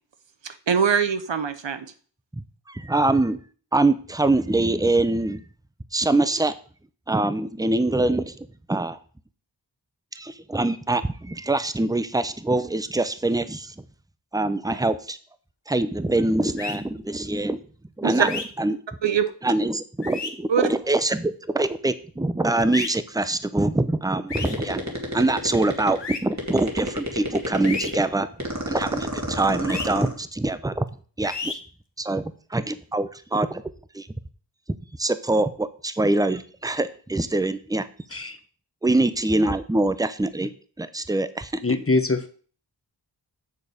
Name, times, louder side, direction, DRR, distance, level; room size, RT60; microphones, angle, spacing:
voice 1, 0.4-1.9 18.0-18.1 19.0-19.3 20.5-20.7, right 7 dB, 75° right, 11 dB, 0.8 m, -23 dB
voice 2, 2.7-3.4 3.7-5.4 5.9-6.5 7.1-9.0 10.1-13.8 14.3-15.2 15.7-17.6 18.0-18.8 19.4-30.8 31.2-31.5 32.0-33.6 33.9-34.1 35.0-37.9 38.8-40.5 40.8-41.6, right 2 dB, 10° right, 13 dB, 0.6 m, -24 dB
sound 1, 16.6-16.8 18.2-18.4 20.0-20.3 22.7-22.9 24.3-24.5 26.0-26.2 27.6-27.9 29.7-29.9 31.2-31.5, left 4 dB, 70° left, 1.1 m, -31 dB
sound 2, 24.4-26.0 26.3-28.0 28.4-30.2, equal, 40° right, 2.3 m, -29 dB
voice 3, 41.6-42.3, left 3 dB, 30° left, 9 dB, 0.9 m, -23 dB
7.0 x 6.7 x 5.0 m, 0.43 s
wide cardioid pair, 50°, 44 cm